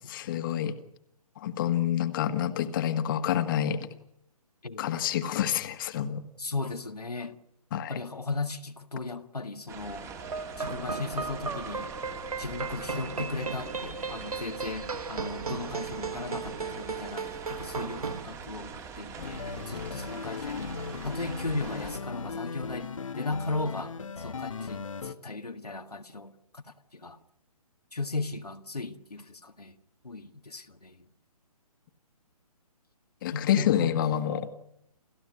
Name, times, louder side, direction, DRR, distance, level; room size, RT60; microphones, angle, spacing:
voice 1, 0.1-0.8 1.4-3.9 4.8-6.2 7.7-8.0 33.2-34.5, left 10 dB, 35° left, 1.8 m, -28 dB
voice 2, 6.4-7.4 7.7-10.1 10.6-11.9 12.4-20.8 21.0-26.6 26.9-27.2 27.9-29.8 30.0-31.0 33.3-34.0, left 3 dB, 80° left, 1.8 m, -36 dB
sound 1, 9.7-22.0, right 6 dB, 15° right, 2.5 m, -43 dB
sound 2, 10.2-18.2, right 4 dB, 70° right, 1.3 m, -36 dB
sound 3, 19.2-25.1, left 5 dB, 55° left, 1.5 m, -37 dB
29.5 x 15.0 x 9.5 m
figure-of-eight pair, 135°, 20 cm